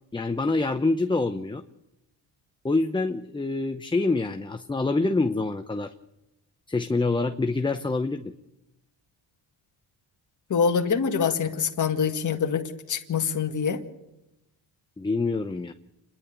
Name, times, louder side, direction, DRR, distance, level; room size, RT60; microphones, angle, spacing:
voice 1, 0.1-1.6 2.6-5.9 6.7-8.3 15.0-15.7, left 3 dB, 10° left, 7 dB, 0.7 m, -26 dB
voice 2, 10.5-13.8, left 6 dB, 45° left, 2 dB, 2.0 m, -25 dB
28.5 x 11.0 x 8.5 m, 0.92 s
cardioid pair, 105°, 42 cm